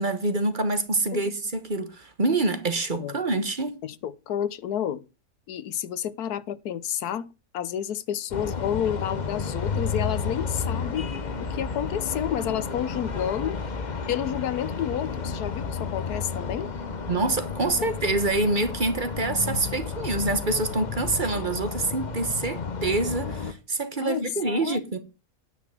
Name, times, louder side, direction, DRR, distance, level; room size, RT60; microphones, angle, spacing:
voice 1, 0.0-3.8 17.1-25.0, right 2 dB, 35° right, 1.2 m, -26 dB
voice 2, 3.8-5.0 5.5-7.3 7.5-11.1 11.4-13.6 14.1-16.7 24.0-24.8, left 10 dB, 80° left, 1.4 m, -30 dB
sound 1, 8.3-23.5, left 5 dB, 35° left, 0.9 m, -32 dB
10.0 x 6.1 x 6.0 m
omnidirectional pair, 1.6 m